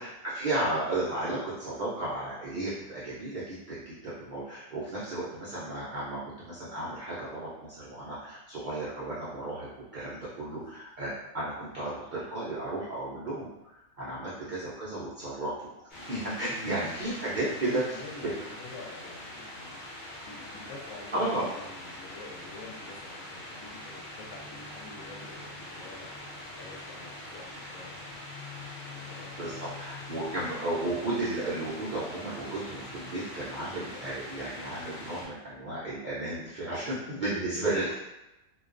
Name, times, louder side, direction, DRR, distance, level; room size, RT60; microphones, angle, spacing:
voice 1, 0.0-15.5 16.1-17.8 21.1-21.5 29.4-37.9, right 2 dB, 80° right, -9 dB, 0.4 m, -34 dB
sound 1, 15.9-35.3, left 1 dB, 50° left, 0.5 m, -43 dB
voice 2, 16.5-16.8 17.1-28.1 28.9-30.3 36.6-37.9, left 3 dB, 70° left, -2 dB, 0.9 m, -47 dB
2.3 x 2.2 x 2.4 m, 0.95 s
omnidirectional pair, 1.6 m